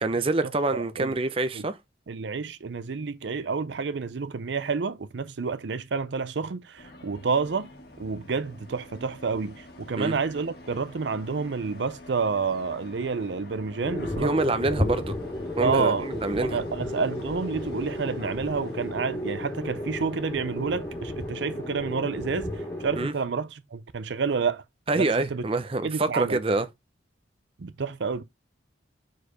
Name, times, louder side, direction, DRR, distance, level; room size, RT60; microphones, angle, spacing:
voice 1, 0.0-1.8 10.0-10.2 14.2-15.1 15.6-16.6 23.0-23.1 24.9-26.7, right 2 dB, 30° right, 0.6 m, -26 dB
voice 2, 0.7-1.1 1.5-1.6 2.1-7.7 8.0-14.5 15.6-16.1 16.4-22.5 22.8-24.6 24.9-25.4 25.8-26.4 27.6-28.2, right 5 dB, 70° right, 0.5 m, -29 dB
sound 1, 6.8-23.0, left 1 dB, 55° left, 1.6 m, -48 dB
sound 2, 13.8-23.1, left 1 dB, 15° left, 1.8 m, -33 dB
4.7 x 4.6 x 4.7 m
head